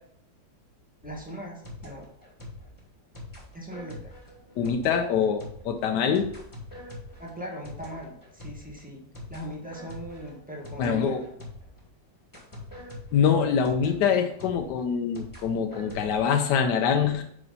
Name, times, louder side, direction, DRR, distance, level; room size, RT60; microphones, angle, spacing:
sound 1, 1.0-11.9 12.3-16.3, left 2 dB, 10° left, 1.5 m, -44 dB
voice 1, 1.0-2.0 3.5-4.2 7.2-9.0 9.3-11.3, equal, 5° right, -2 dB, 1.2 m, -39 dB
voice 2, 4.6-6.3 10.8-11.2 13.1-17.2, left 7 dB, 75° left, 5 dB, 1.1 m, -24 dB
5.0 x 4.9 x 5.3 m, 0.68 s
omnidirectional pair, 2.0 m